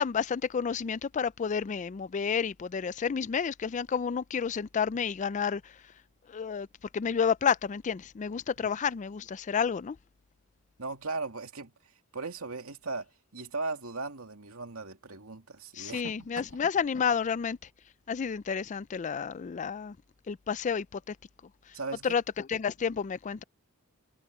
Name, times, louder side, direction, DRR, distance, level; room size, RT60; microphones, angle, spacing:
voice 1, 0.0-5.8 6.3-6.7 6.9-10.0 15.8-17.6 18.1-20.0 20.3-21.2 22.0-23.4, left 6 dB, 35° left, 0.4 m, -30 dB
voice 2, 10.8-11.7 12.1-16.5 21.7-22.2, right 3 dB, 75° right, 2.5 m, -38 dB
head